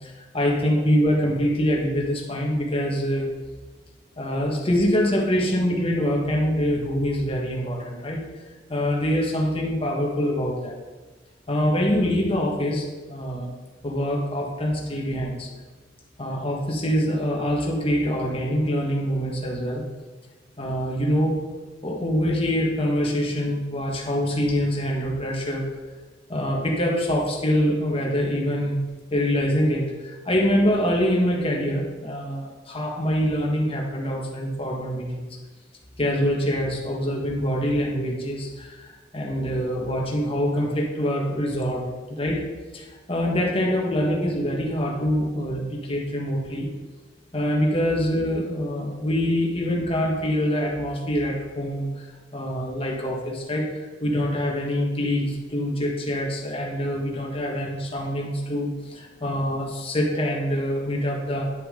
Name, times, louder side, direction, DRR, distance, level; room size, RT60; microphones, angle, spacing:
voice 1, 0.0-3.3 4.2-8.2 8.7-10.7 11.5-13.5 13.8-15.5 16.2-19.8 20.6-21.3 21.8-25.6 26.3-28.8 29.1-35.3 36.0-42.4 42.7-46.7 47.3-52.0 52.3-61.5, equal, 30° left, -1 dB, 1.6 m, -25 dB
10.5 x 6.9 x 3.8 m, 1.3 s
head